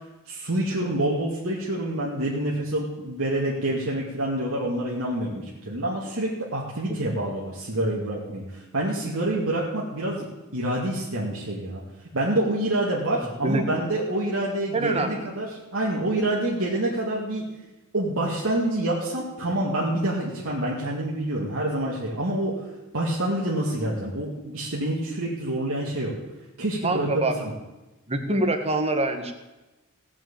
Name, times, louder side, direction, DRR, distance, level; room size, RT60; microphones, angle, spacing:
voice 1, 0.3-10.2 10.5-11.8 12.1-17.4 17.9-22.7 22.9-26.2 26.6-27.5, right 1 dB, 65° right, -5 dB, 2.4 m, -27 dB
voice 2, 13.4-13.8 14.7-15.2 26.8-27.4 28.1-29.3, right 2 dB, 30° right, 6 dB, 1.5 m, -25 dB
17.0 x 6.2 x 8.8 m, 1.1 s
head